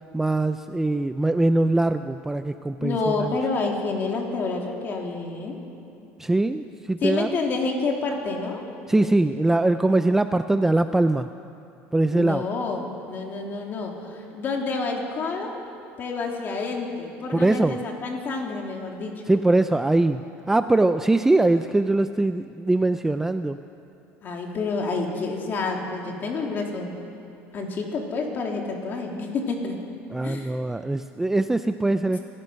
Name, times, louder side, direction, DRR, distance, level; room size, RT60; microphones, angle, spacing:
voice 1, 0.1-3.3 6.2-7.3 8.9-11.3 11.9-12.4 17.3-17.8 19.3-23.6 30.1-32.2, right 2 dB, 5° right, 9 dB, 0.4 m, -22 dB
voice 2, 2.8-5.6 7.0-8.6 12.1-15.5 16.0-19.2 24.2-27.0 27.5-29.8 30.2-30.6, left 3 dB, 35° left, 1 dB, 3.0 m, -29 dB
26.0 x 15.5 x 6.4 m, 2.7 s
cardioid pair, 150°, 6 cm